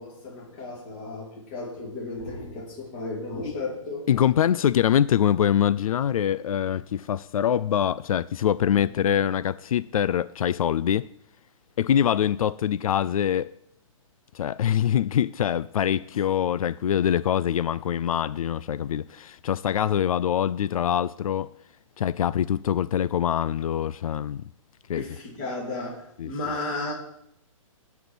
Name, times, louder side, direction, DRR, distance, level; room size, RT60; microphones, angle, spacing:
voice 1, 0.0-4.1 24.9-26.9, left 2 dB, 20° left, 2.4 m, -34 dB
voice 2, 4.1-11.1 11.8-13.5 14.3-21.5 22.0-24.4 24.9-25.0 26.2-26.3, left 9 dB, 80° left, 0.4 m, -24 dB
12.0 x 4.4 x 7.9 m
hypercardioid pair, 175°, 18 cm